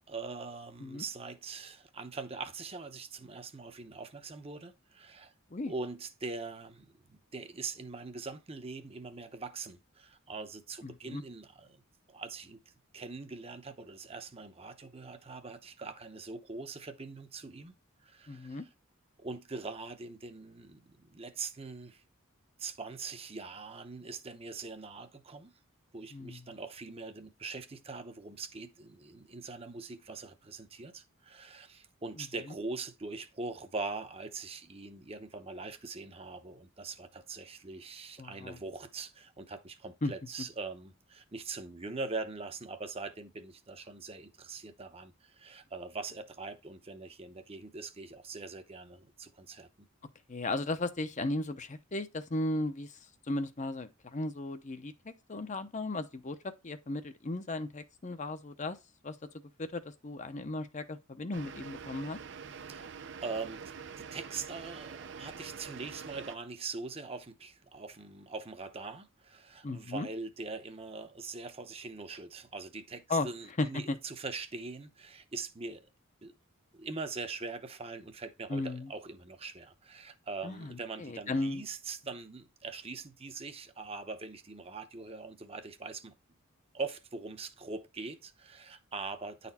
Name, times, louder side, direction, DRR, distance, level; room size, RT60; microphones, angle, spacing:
voice 1, 0.0-5.3 5.7-11.8 12.1-12.6 12.9-17.7 18.0-18.7 19.2-22.0 22.6-25.5 25.9-49.9 62.5-62.9 63.2-63.6 64.0-75.8 76.2-76.3 76.7-86.1 86.7-89.5, right 4 dB, 30° right, 0.8 m, -42 dB
voice 2, 10.8-11.2 18.3-18.6 26.1-26.4 32.2-32.3 38.2-38.6 40.0-40.1 50.3-53.0 53.3-58.8 59.0-59.2 59.6-62.2 69.6-70.1 73.1-73.3 73.6-74.0 78.5-78.9 80.4-81.6, left 2 dB, 35° left, 0.7 m, -35 dB
sound 1, 61.3-66.4, right 6 dB, 60° right, 0.6 m, -45 dB
9.9 x 4.2 x 4.2 m
head